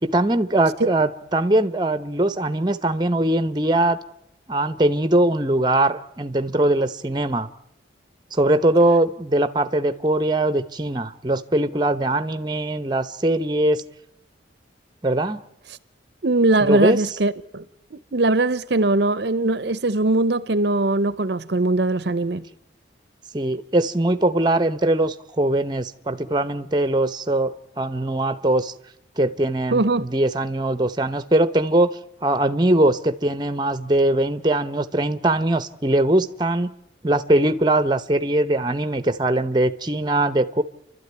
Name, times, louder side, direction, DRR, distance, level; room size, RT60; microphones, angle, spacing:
voice 1, 0.0-4.0 4.5-7.5 8.3-13.8 15.0-15.4 16.6-17.0 23.3-28.7 29.2-36.7 37.0-40.6, right 1 dB, 25° right, 0.8 m, -21 dB
voice 2, 16.2-17.6 17.9-22.4 29.7-30.1, right 2 dB, 60° right, 0.7 m, -21 dB
29.5 x 12.5 x 9.5 m
head